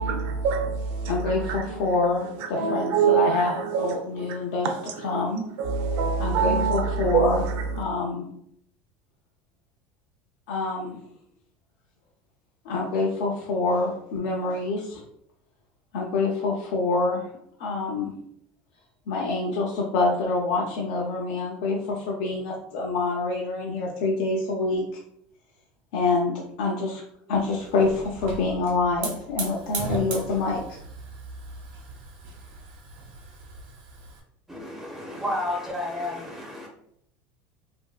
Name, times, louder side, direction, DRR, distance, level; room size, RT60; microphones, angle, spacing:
voice 1, 0.0-5.3 5.6-7.8, right 6 dB, 60° right, 0.5 m, -26 dB
voice 2, 1.1-4.7 5.0-5.4 6.2-7.4 7.8-8.2 10.5-11.0 12.7-15.0 15.9-17.2 17.6-18.1 19.1-24.8 25.9-27.0 27.3-30.8, left 3 dB, 80° left, 0.5 m, -26 dB
Hiss / Fire, 27.3-34.2, right 3 dB, 80° right, 1.0 m, -38 dB
voice 3, 34.5-36.7, left 1 dB, 5° right, 0.4 m, -31 dB
2.9 x 2.5 x 2.3 m
cardioid pair, 155°, 4 cm